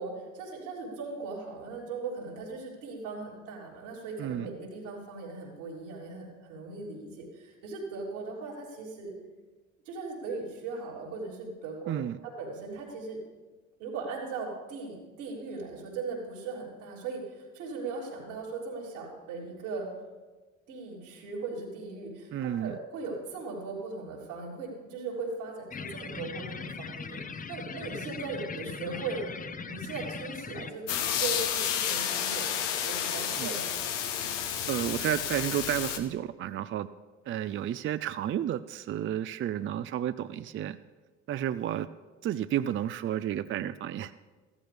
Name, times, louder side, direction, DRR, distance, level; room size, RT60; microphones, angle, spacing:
voice 1, 0.0-9.1 9.9-13.2 13.8-19.9 20.7-29.3 29.7-30.9 31.2-33.8, right 4 dB, 80° right, -4 dB, 3.5 m, -38 dB
voice 2, 11.9-12.2 22.3-22.8 33.4-33.5 34.7-36.9 37.3-40.8 41.3-41.9 42.2-44.1, right 11 dB, 35° right, 13 dB, 0.4 m, -31 dB
sound 1, 25.7-30.7, left 5 dB, 25° left, 0.7 m, -39 dB
sound 2, 30.9-36.0, left 9 dB, 80° left, 1.2 m, -31 dB
14.5 x 13.5 x 3.4 m, 1.3 s
hypercardioid pair, 60°, 36 cm